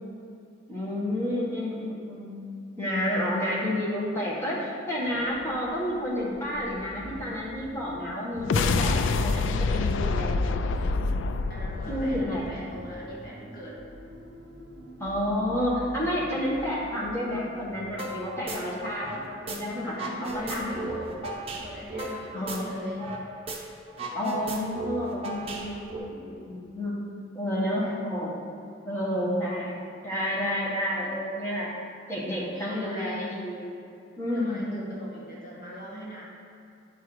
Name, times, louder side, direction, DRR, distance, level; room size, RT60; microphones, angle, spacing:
voice 1, 0.7-2.4 2.8-10.5 11.9-12.5 15.0-19.2 19.4-21.0 22.3-22.8 24.1-26.9 27.3-28.4 28.8-31.7 32.1-33.7 34.2-34.7, left 1 dB, 15° left, -6 dB, 1.6 m, -30 dB
sound 1, 5.0-23.3, right 1 dB, 70° right, 0.8 m, -46 dB
sound 2, 8.4-12.9, left 3 dB, 75° left, 0.4 m, -26 dB
voice 2, 11.5-13.8 18.5-18.9 19.8-21.1 21.6-23.0 27.6-27.9 32.3-33.4 34.3-36.2, equal, 50° left, -5 dB, 1.5 m, -42 dB
sound 3, 18.0-18.2 18.5-19.6 19.9-23.2 23.5-23.6 23.9-26.0, right 2 dB, 30° right, 1.0 m, -35 dB
10.0 x 4.7 x 4.7 m, 2.6 s
head